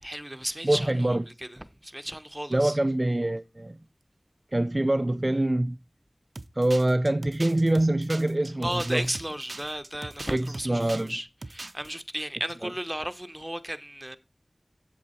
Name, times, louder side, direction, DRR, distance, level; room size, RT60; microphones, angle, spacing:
voice 1, 0.0-2.8 8.6-14.2, right 1 dB, 15° right, 1.0 m, -34 dB
voice 2, 0.6-1.2 2.5-3.8 4.5-5.8 6.6-9.0 10.3-11.2 12.6-12.7, right 1 dB, 40° right, 0.5 m, -25 dB
sound 1, 6.4-11.1 11.4-11.9, right 2 dB, 75° right, 0.7 m, -41 dB
8.2 x 7.9 x 4.3 m
wide cardioid pair, 40°, 0 cm